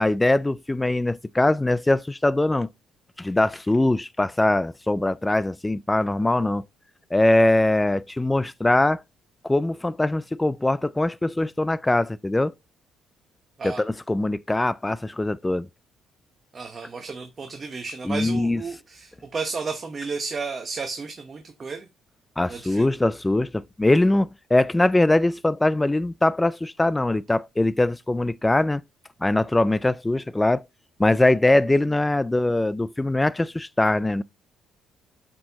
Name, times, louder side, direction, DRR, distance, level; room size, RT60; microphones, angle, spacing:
voice 1, 0.0-2.7 3.2-6.6 7.1-9.0 9.4-12.5 13.6-15.7 18.0-18.6 22.4-28.8 29.2-30.6 31.0-34.2, left 2 dB, 10° left, 0.3 m, -22 dB
voice 2, 16.5-21.9 22.5-22.9, right 4 dB, 30° right, 0.9 m, -33 dB
7.4 x 4.5 x 2.8 m
cardioid pair, 120°, 0 cm